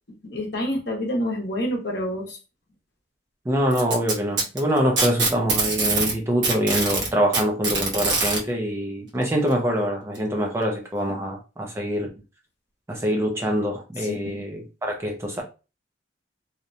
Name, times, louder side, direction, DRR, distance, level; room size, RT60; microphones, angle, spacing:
voice 1, 0.3-2.4 14.0-14.4, equal, 60° left, 0.8 m, -28 dB
voice 2, 3.5-12.1 12.9-15.4, equal, 15° right, 0.4 m, -24 dB
Packing tape duct tape, 3.7-6.1 6.4-8.4 9.5-9.6 10.1-10.2 11.1-11.2, right 3 dB, 75° right, 1.0 m, -23 dB
2.8 x 2.1 x 2.5 m
head